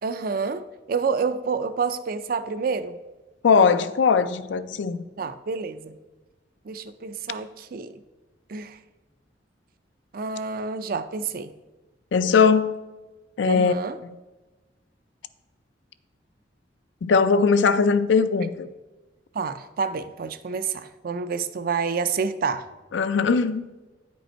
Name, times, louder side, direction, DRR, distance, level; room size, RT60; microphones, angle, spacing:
voice 1, 0.0-3.0 5.2-6.0 6.6-8.0 8.5-8.8 10.1-11.5 13.5-14.0 19.3-22.7, right 5 dB, 50° right, 0.4 m, -28 dB
voice 2, 3.4-5.0 12.1-12.7 13.4-13.7 14.0-14.1 17.0-18.7 22.9-23.7, left 5 dB, 75° left, 0.4 m, -20 dB
9.0 x 5.3 x 4.4 m
head